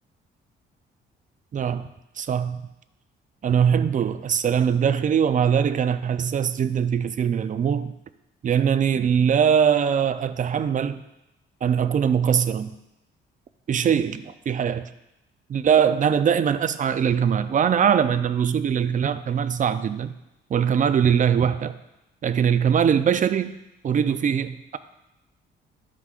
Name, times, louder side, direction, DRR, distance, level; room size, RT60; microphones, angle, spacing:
voice 1, 1.5-1.9 2.2-2.6 3.4-7.9 8.4-11.0 11.6-12.7 13.7-14.9 15.5-20.1 20.5-21.8 22.2-23.6 23.8-24.8, right 8 dB, 40° right, 0.5 m, -22 dB
12.5 x 5.9 x 2.5 m
cardioid pair, 90°, 20 cm